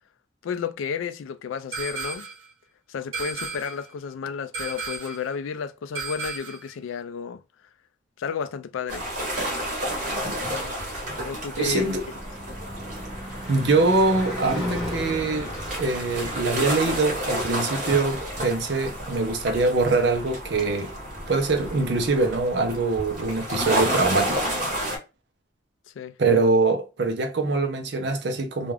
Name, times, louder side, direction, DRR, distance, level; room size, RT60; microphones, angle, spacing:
voice 1, 0.4-2.3 2.9-7.4 8.2-9.1 11.2-11.9 26.0-26.2, left 6 dB, 80° left, 0.3 m, -32 dB
sound 1, 1.7-2.5 3.1-3.9 4.5-5.3 5.9-6.7, right 4 dB, 80° right, 1.0 m, -34 dB
sound 2, 8.9-25.0, equal, 40° right, 1.0 m, -31 dB
Car passing by / Truck / Engine, 10.5-20.7, left 1 dB, 5° right, 1.1 m, -37 dB
voice 2, 11.6-12.0 13.5-15.5 15.8-20.9 21.3-24.5 26.2-28.7, right 3 dB, 60° right, 0.6 m, -23 dB
2.4 x 2.3 x 3.2 m
head